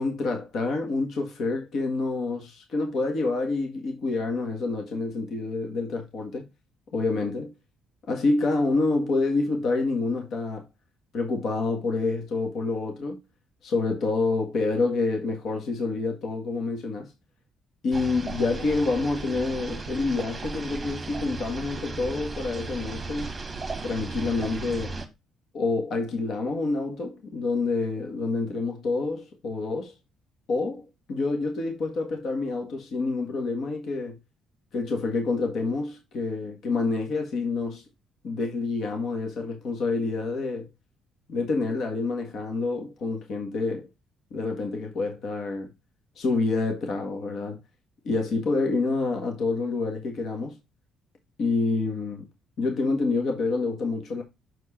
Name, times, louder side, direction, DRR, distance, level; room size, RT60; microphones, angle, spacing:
voice 1, 0.0-6.5 6.9-7.5 8.1-10.6 11.1-13.2 13.6-17.1 17.8-23.3 23.8-25.0 25.5-29.9 30.5-34.2 34.7-37.8 38.2-40.7 41.3-43.9 44.3-45.7 46.2-47.6 48.0-50.6 51.4-52.3 52.6-54.2, left 3 dB, 55° left, 1.6 m, -27 dB
sound 1, 17.9-25.1, right 3 dB, 15° right, 1.3 m, -36 dB
6.6 x 4.6 x 4.2 m
cardioid pair, 145°, 0 cm